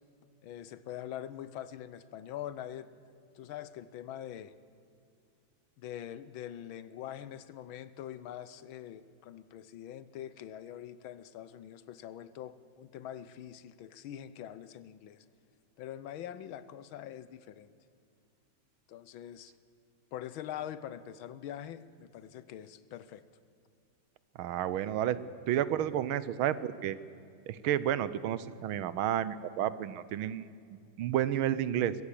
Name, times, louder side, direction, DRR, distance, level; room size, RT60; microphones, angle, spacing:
voice 1, 0.4-2.9 3.3-4.5 5.8-15.2 15.8-17.7 18.9-19.5 20.1-23.2, left 11 dB, 75° left, 15 dB, 1.5 m, -44 dB
voice 2, 24.4-25.2 25.5-27.0 27.5-32.0, right 11 dB, 80° right, 16 dB, 1.5 m, -31 dB
22.5 x 14.5 x 8.4 m, 2.4 s
omnidirectional pair, 2.3 m